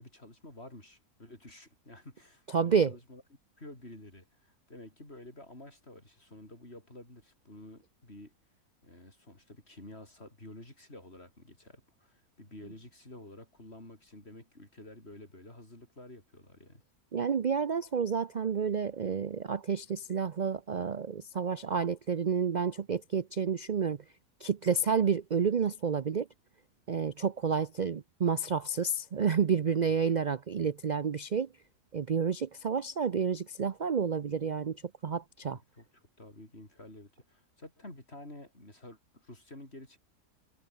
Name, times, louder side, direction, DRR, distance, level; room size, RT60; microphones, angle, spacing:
voice 1, 0.0-3.2 3.6-8.3 8.8-16.8 35.7-40.0, left 1 dB, 40° left, 7.0 m, -50 dB
voice 2, 2.5-2.9 17.1-24.0 24.4-26.3 26.9-31.5 31.9-34.8 35.0-35.6, right 6 dB, 75° right, 0.4 m, -30 dB
omnidirectional pair, 1.6 m